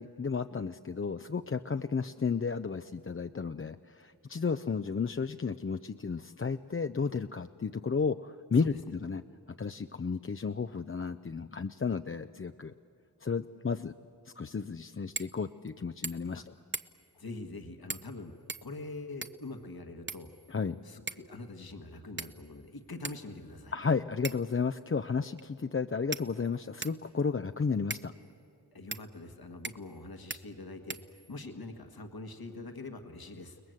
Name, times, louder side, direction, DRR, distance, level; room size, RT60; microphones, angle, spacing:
voice 1, 0.0-9.2 9.6-12.7 13.2-13.9 14.4-16.4 20.5-20.8 23.7-28.1, left 5 dB, 35° left, 9 dB, 0.5 m, -33 dB
sound 1, 15.1-15.4 15.7-15.8 16.0-16.4 16.7-17.1 17.9-18.1 18.5-19.5 20.1-20.7 21.1-21.3 22.2-22.6 23.0-23.2 24.2-24.6 25.4-25.5 26.1-27.0 27.9-28.1 28.9-29.1 29.6-30.0 30.3-30.4 30.9-31.5, right 4 dB, 30° right, 0.7 m, -40 dB
voice 2, 17.1-18.3 18.6-20.3 20.8-23.7 28.7-33.6, left 2 dB, 65° left, 5 dB, 1.7 m, -44 dB
30.0 x 20.0 x 7.9 m, 2.6 s
wide cardioid pair, 65°, 39 cm